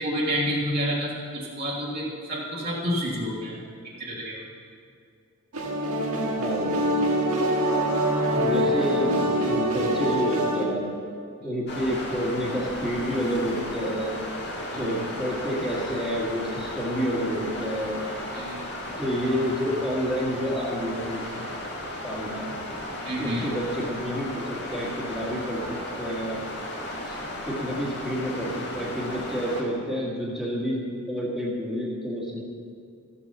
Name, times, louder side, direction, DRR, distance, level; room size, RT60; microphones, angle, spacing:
voice 1, 0.0-3.6 4.0-4.4 11.4-11.6 14.7-15.0 18.3-18.7 23.0-23.4, equal, 45° right, -5 dB, 1.8 m, -29 dB
sound 1, 5.5-10.6, equal, 80° right, 1.7 m, -24 dB
voice 2, 6.4-6.8 8.3-9.2 9.5-10.9 11.4-14.1 14.8-18.0 19.0-21.4 22.0-22.5 23.2-26.4 27.1-27.2 27.4-32.4, equal, ahead, -7 dB, 2.0 m, -29 dB
sound 2, 11.7-29.6, left 1 dB, 55° left, 2.0 m, -35 dB
14.0 x 7.1 x 6.8 m, 2.3 s
head